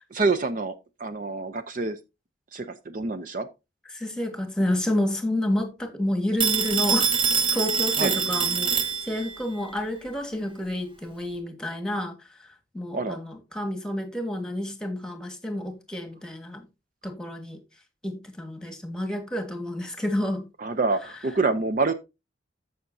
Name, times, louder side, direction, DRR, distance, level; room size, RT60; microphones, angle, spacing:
voice 1, 0.1-0.7 1.0-2.0 2.5-3.5 8.0-8.1 12.9-13.2 20.6-21.9, right 3 dB, 45° right, 0.6 m, -26 dB
voice 2, 3.9-7.1 7.5-12.1 12.7-16.7 17.0-17.6 18.0-20.5, left 1 dB, 5° left, 1.5 m, -29 dB
Telephone, 6.4-9.4, right 6 dB, 30° right, 1.1 m, -24 dB
14.5 x 5.8 x 2.7 m
head